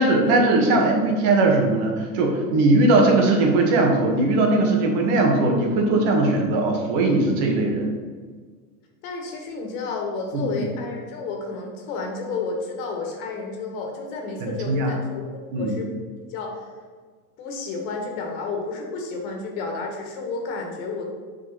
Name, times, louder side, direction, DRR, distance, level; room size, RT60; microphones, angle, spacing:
voice 1, 0.0-7.9 10.3-10.7 14.4-14.9 15.5-15.7, right 2 dB, 60° right, 1 dB, 1.9 m, -20 dB
voice 2, 9.0-15.9 16.3-16.7 17.4-21.0, left 4 dB, 65° left, 1 dB, 1.9 m, -31 dB
6.0 x 5.3 x 4.3 m, 1.5 s
hypercardioid pair, 95°, 44 cm